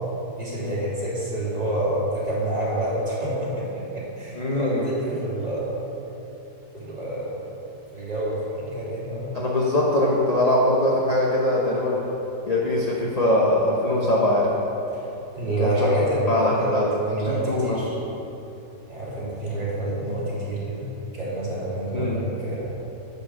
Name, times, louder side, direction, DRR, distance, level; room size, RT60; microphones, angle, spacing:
voice 1, 0.4-5.8 6.7-7.4 7.9-9.3 15.3-17.9 18.9-20.9 21.1-22.7, right 1 dB, 25° right, -6 dB, 2.2 m, -28 dB
voice 2, 4.3-4.8 9.3-12.0 12.5-14.5 15.4-15.9 16.3-16.9 17.2-17.8 21.9-22.2, left 1 dB, 30° left, -4 dB, 0.9 m, -22 dB
8.0 x 6.8 x 6.2 m, 2.9 s
omnidirectional pair, 1.8 m